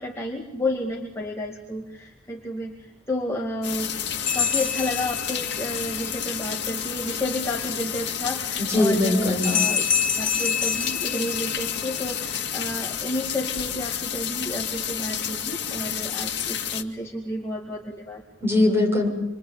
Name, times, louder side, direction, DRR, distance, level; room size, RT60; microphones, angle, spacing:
voice 1, 0.0-3.9 4.3-9.8 10.2-18.2, left 1 dB, 15° left, -2 dB, 2.4 m, -31 dB
sound 1, 3.6-16.8, left 8 dB, 60° left, 2.2 m, -30 dB
sound 2, 4.3-5.8 9.4-11.9, left 7 dB, 45° left, 1.8 m, -26 dB
voice 2, 8.6-9.5 18.4-19.1, left 2 dB, 10° right, -1 dB, 7.4 m, -21 dB
27.5 x 24.0 x 9.0 m, 0.92 s
head